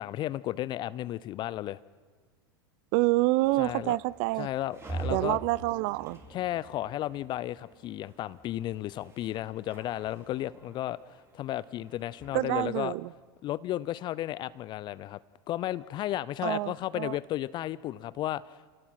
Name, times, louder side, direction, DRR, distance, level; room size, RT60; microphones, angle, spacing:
voice 1, 0.0-1.8 3.6-4.0 4.4-5.4 6.3-13.0 13.4-15.2 15.5-18.4, left 13 dB, 40° left, 0.5 m, -33 dB
voice 2, 2.9-4.5 5.1-6.2 12.3-13.1 16.4-17.2, right 21 dB, 55° right, 0.5 m, -27 dB
sound 1, 3.4-12.8, right 3 dB, 20° right, 4.0 m, -45 dB
28.0 x 18.5 x 5.9 m
hypercardioid pair, 90°, 12 cm